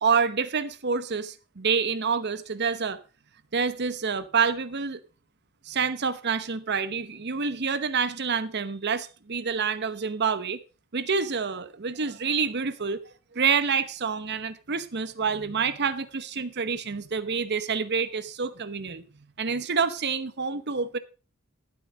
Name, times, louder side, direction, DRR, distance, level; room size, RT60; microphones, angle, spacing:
voice 1, 0.0-3.0 3.5-5.0 5.6-10.6 10.9-19.0 19.4-21.0, right 5 dB, 50° right, 0.9 m, -27 dB
12.0 x 8.4 x 5.1 m
head